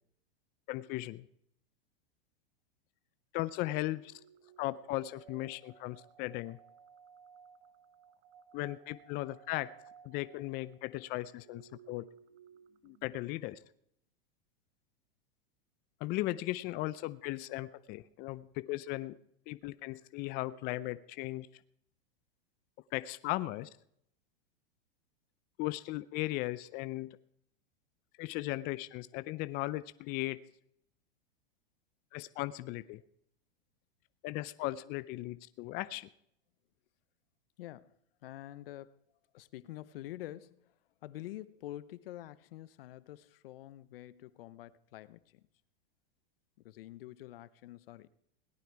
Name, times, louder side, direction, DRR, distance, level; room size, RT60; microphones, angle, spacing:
voice 1, 0.7-1.3 3.3-4.2 4.6-6.6 8.5-9.7 10.0-12.1 12.8-13.6 16.0-19.2 19.5-21.5 22.9-23.7 25.6-27.2 28.2-30.4 32.1-33.0 34.2-36.1, left 18 dB, 30° left, 0.5 m, -37 dB
sound 1, 3.7-13.5, right 8 dB, 45° right, 1.0 m, -59 dB
voice 2, 37.6-37.9 38.2-38.9 39.3-40.8 41.0-45.4 46.6-48.1, left 14 dB, 70° left, 0.9 m, -47 dB
18.0 x 11.5 x 4.6 m
supercardioid pair, 135°, 30 cm